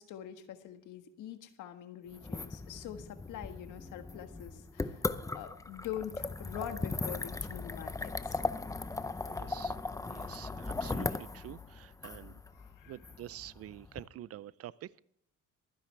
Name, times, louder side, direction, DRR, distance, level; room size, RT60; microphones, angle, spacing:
voice 1, 0.0-8.4 12.5-13.0, left 10 dB, 75° left, 1.6 m, -44 dB
sound 1, 2.1-14.0, left 3 dB, 10° left, 0.6 m, -38 dB
voice 2, 9.3-9.8 10.1-12.4 12.9-14.9, right 13 dB, 50° right, 0.5 m, -47 dB
23.5 x 10.0 x 3.3 m
cardioid pair, 125°, 31 cm